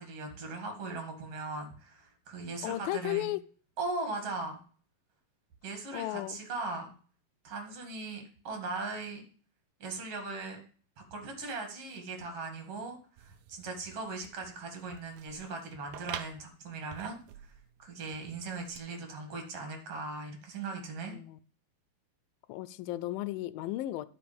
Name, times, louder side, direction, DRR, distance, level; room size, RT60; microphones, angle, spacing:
voice 1, 0.0-3.3 3.8-4.6 5.6-6.9 7.4-9.2 9.8-10.6 11.1-17.5 17.8-21.2, right 3 dB, 45° right, 2.6 m, -39 dB
voice 2, 2.6-3.4 5.9-6.4 21.1-21.4 22.5-24.1, left 16 dB, 80° left, 2.2 m, -34 dB
sound 1, 13.2-18.8, right 10 dB, 85° right, 1.6 m, -48 dB
12.0 x 5.5 x 5.2 m
omnidirectional pair, 4.3 m